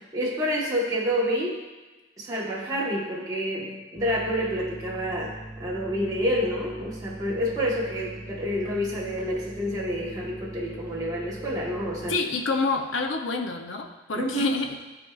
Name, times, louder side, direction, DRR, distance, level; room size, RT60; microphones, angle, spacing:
voice 1, 0.1-1.6 2.2-12.2 14.1-14.6, equal, 20° right, -6 dB, 1.1 m, -28 dB
sound 1, 4.0-12.1, right 1 dB, 15° left, 1.0 m, -41 dB
voice 2, 12.1-14.8, left 3 dB, 75° left, 5 dB, 0.6 m, -28 dB
12.0 x 4.3 x 2.4 m, 1.2 s
head